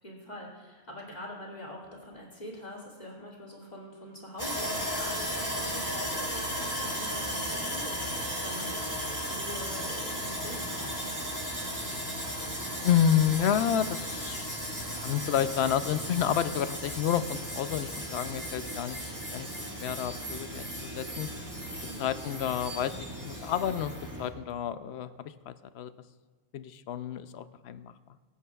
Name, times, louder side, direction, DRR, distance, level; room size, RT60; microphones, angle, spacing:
voice 1, 0.0-11.2 21.8-22.1, equal, 40° left, -4 dB, 2.6 m, -44 dB
Sawing, 4.4-24.3, equal, 15° right, 1.8 m, -35 dB
voice 2, 12.8-14.5 14.9-19.0 19.3-21.3 22.0-23.9 24.2-25.9 26.5-27.9, left 9 dB, 80° left, 13 dB, 0.8 m, -30 dB
22.0 x 8.3 x 2.3 m, 1.4 s
omnidirectional pair, 1.1 m